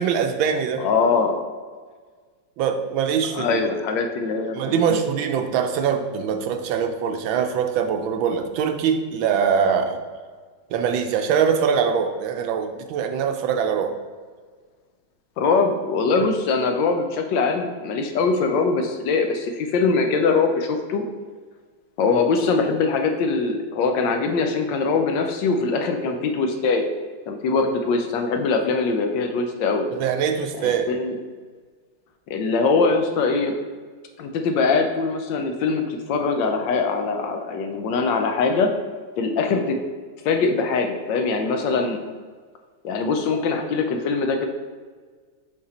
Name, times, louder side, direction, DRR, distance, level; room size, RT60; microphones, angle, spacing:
voice 1, 0.0-0.9 2.6-3.6 4.5-10.0 10.7-13.9 29.9-30.9, right 7 dB, 80° right, 6 dB, 1.4 m, -23 dB
voice 2, 0.8-1.4 3.3-5.0 15.4-21.0 22.0-26.9 27.3-29.9 30.6-31.1 32.3-33.5 34.2-38.7 39.2-39.8 40.2-42.0 42.8-44.5, left 4 dB, 75° left, 5 dB, 1.2 m, -22 dB
6.6 x 3.6 x 4.1 m, 1.5 s
omnidirectional pair, 2.2 m